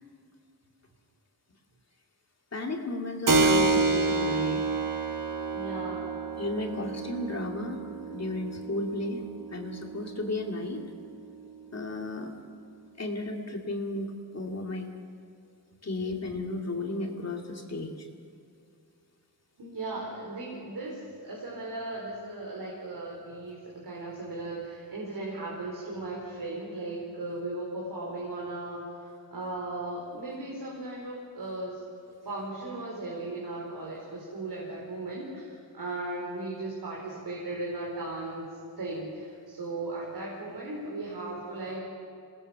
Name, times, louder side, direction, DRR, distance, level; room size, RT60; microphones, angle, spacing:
voice 1, 2.5-4.6 6.4-7.8 8.1-9.2 9.5-10.8 11.7-12.3 13.0-14.9 15.8-18.1, left 2 dB, 45° left, 1 dB, 2.5 m, -34 dB
Keyboard (musical), 3.3-11.5, right 3 dB, 55° right, 1.4 m, -29 dB
voice 2, 5.5-6.1 19.6-31.8 32.2-38.5 38.8-41.8, right 2 dB, 80° right, -4 dB, 4.6 m, -37 dB
28.5 x 19.0 x 5.9 m, 2.4 s
wide cardioid pair, 160°, 37 cm